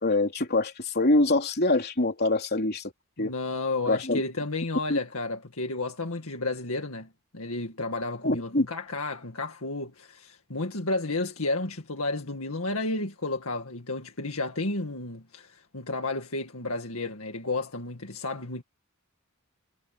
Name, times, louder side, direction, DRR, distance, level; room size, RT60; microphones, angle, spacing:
voice 1, 0.0-2.9 3.2-3.3 3.9-4.2 4.9-5.0 8.2-8.7, left 2 dB, 50° left, 3.4 m, -24 dB
voice 2, 3.2-18.6, left 2 dB, 70° left, 2.2 m, -32 dB
head